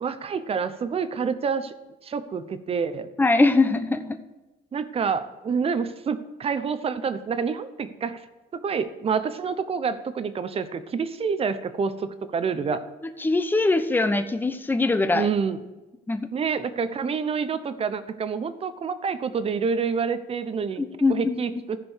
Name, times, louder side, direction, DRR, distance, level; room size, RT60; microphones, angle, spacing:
voice 1, 0.0-1.7 2.0-3.1 4.7-8.2 8.6-12.8 15.1-15.6 16.3-20.8 21.1-21.8, right 6 dB, 35° right, 12 dB, 0.9 m, -27 dB
voice 2, 3.2-4.2 13.2-15.3 16.1-16.2 20.8-21.4, left 3 dB, 10° left, 9 dB, 0.8 m, -22 dB
14.5 x 5.1 x 6.3 m, 1.1 s
cardioid pair, 110°, 17 cm